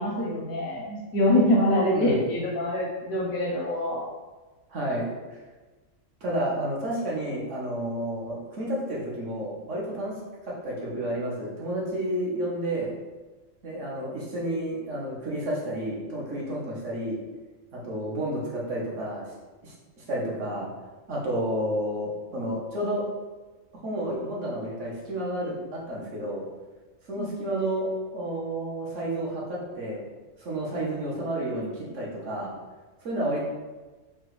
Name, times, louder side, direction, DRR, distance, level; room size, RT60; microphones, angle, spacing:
voice 1, 0.0-4.1 27.2-27.3, left 1 dB, 80° left, -5 dB, 1.2 m, -25 dB
voice 2, 4.7-5.2 6.2-10.1 10.4-12.9 13.6-17.2 17.7-19.2 19.6-20.7 21.1-23.0 23.8-26.4 27.1-30.0 30.4-32.5 33.0-33.4, right 1 dB, 60° right, -4 dB, 1.3 m, -31 dB
5.2 x 2.4 x 3.1 m, 1.2 s
omnidirectional pair, 1.5 m